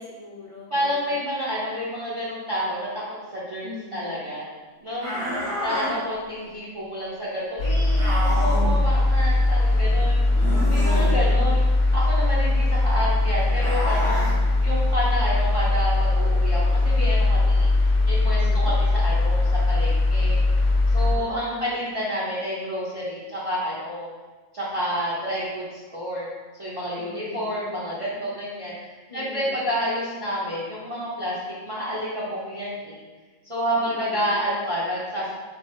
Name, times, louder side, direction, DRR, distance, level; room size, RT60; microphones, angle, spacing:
voice 1, 0.0-1.1 3.6-4.3 5.1-5.7 10.9-11.6 18.4-18.7 21.0-21.8 26.9-27.5 29.1-29.6 33.7-34.3, left 3 dB, 30° left, -4 dB, 0.8 m, -41 dB
voice 2, 0.7-3.0 3.3-4.5 4.8-5.1 5.6-10.2 10.7-11.6 11.9-14.3 14.6-20.4 20.9-24.1 24.5-26.3 26.6-31.4 31.6-33.0 33.4-35.3, equal, 30° right, -9 dB, 0.8 m, -29 dB
sound 1, 5.0-5.9 8.0-8.7 10.3-11.2 13.5-14.3, equal, 90° right, 1.9 m, -29 dB
sound 2, 7.6-21.2, left 2 dB, 65° left, 0.9 m, -20 dB
4.5 x 2.6 x 4.3 m, 1.3 s
omnidirectional pair, 1.4 m